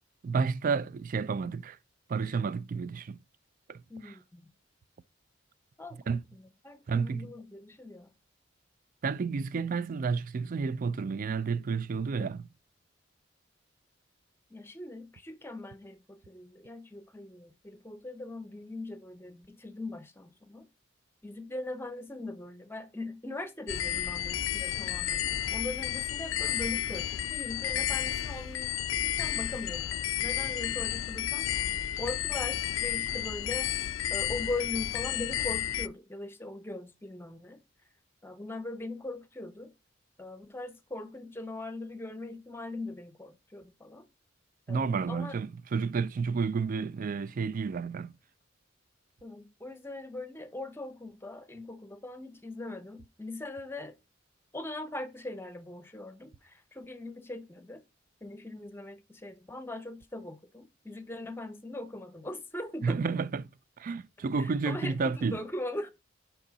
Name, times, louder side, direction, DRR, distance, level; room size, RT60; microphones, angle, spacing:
voice 1, 0.2-1.8 2.1-3.2 3.7-4.1 6.1-6.2 6.9-7.3 9.0-12.5 44.7-48.2 62.8-63.5 63.8-65.4, right 5 dB, 45° right, 0.3 m, -31 dB
voice 2, 3.9-4.5 5.8-6.2 6.6-8.1 14.5-20.7 21.2-31.5 32.0-33.7 34.1-37.6 38.2-39.7 40.2-44.1 44.7-45.4 49.2-53.9 54.5-57.8 58.2-63.0 64.4-65.9, left 2 dB, 10° left, 0.7 m, -40 dB
sound 1, 23.7-35.9, left 11 dB, 85° left, 0.4 m, -32 dB
5.5 x 5.3 x 4.0 m
head